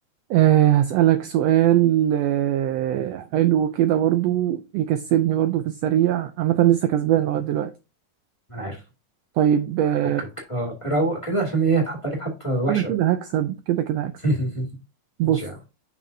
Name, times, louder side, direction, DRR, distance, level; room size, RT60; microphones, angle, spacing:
voice 1, 0.3-7.7 9.4-10.2 12.7-14.1 15.2-15.5, right 12 dB, 80° right, 1.5 m, -21 dB
voice 2, 10.5-12.9 14.2-14.6 15.2-15.5, right 2 dB, 10° left, 1.8 m, -24 dB
7.6 x 6.0 x 2.7 m
omnidirectional pair, 3.4 m